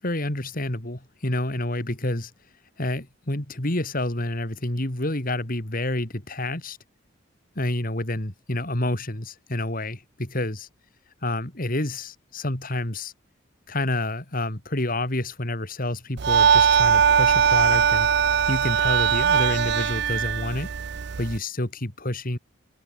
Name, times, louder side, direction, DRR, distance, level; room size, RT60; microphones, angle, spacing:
voice 1, 0.0-2.3 2.8-6.8 7.6-10.7 11.2-13.1 13.7-18.1 18.5-20.7 21.2-22.4, left 1 dB, 45° left, 2.9 m, -28 dB
sound 1, 16.2-21.4, right 7 dB, 55° right, 0.5 m, -20 dB
head